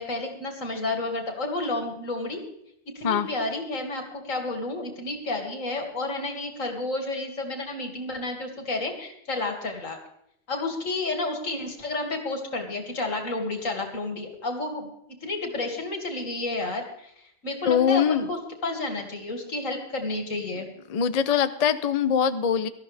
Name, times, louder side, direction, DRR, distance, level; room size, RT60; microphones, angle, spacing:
voice 1, 0.0-2.4 2.9-10.0 10.5-14.9 15.2-20.7, left 2 dB, 90° left, 2 dB, 2.7 m, -31 dB
voice 2, 17.6-18.3 20.9-22.7, left 8 dB, 40° left, 12 dB, 0.6 m, -22 dB
18.0 x 13.5 x 3.4 m, 0.75 s
omnidirectional pair, 1.3 m